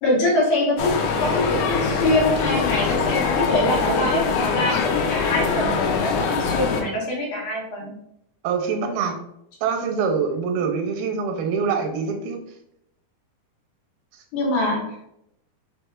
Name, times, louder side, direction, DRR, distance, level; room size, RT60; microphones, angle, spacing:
voice 1, 0.0-0.9 1.2-8.0 10.6-10.7 14.3-15.1, left 1 dB, 70° left, -2 dB, 2.1 m, -24 dB
sound 1, 0.8-6.8, left 5 dB, 85° left, 2.6 m, -23 dB
voice 2, 8.4-9.1 9.6-12.4, right 5 dB, 85° right, 3 dB, 2.4 m, -24 dB
5.8 x 3.4 x 2.3 m, 0.80 s
omnidirectional pair, 4.3 m